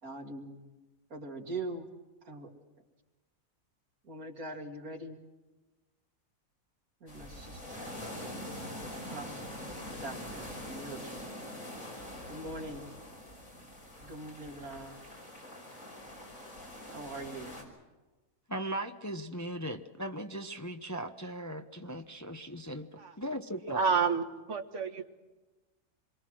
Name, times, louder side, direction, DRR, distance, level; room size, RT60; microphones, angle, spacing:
voice 1, 0.0-0.7 1.1-1.9 2.2-2.5 4.0-5.2 7.0-8.0 9.1-9.7 10.0-11.3 12.3-12.9 14.0-14.9 16.9-17.6, right 2 dB, 90° right, 2 dB, 2.9 m, -42 dB
sound 1, 7.1-17.6, left 1 dB, 70° left, 5.9 m, -44 dB
voice 2, 18.5-23.8, right 1 dB, 15° left, 6 dB, 0.8 m, -38 dB
voice 3, 23.7-24.2 24.5-25.0, right 5 dB, 55° right, 5 dB, 1.9 m, -29 dB
27.0 x 22.5 x 6.3 m, 1.2 s
omnidirectional pair, 1.5 m